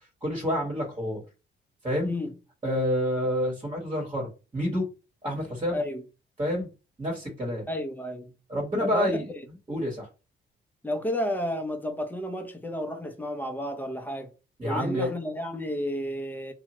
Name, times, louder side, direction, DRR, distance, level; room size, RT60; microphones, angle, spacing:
voice 1, 0.2-1.2 1.8-2.1 2.6-4.8 5.2-5.8 6.4-6.7 7.0-7.6 8.5-9.3 9.7-10.1 14.6-15.1, equal, 25° right, 1.2 m, -28 dB
voice 2, 2.0-2.3 5.7-6.0 7.7-8.3 8.8-9.2 10.8-14.3 14.6-16.5, left 1 dB, 10° left, 0.7 m, -31 dB
2.8 x 2.3 x 2.9 m
cardioid pair, 90°, 20 cm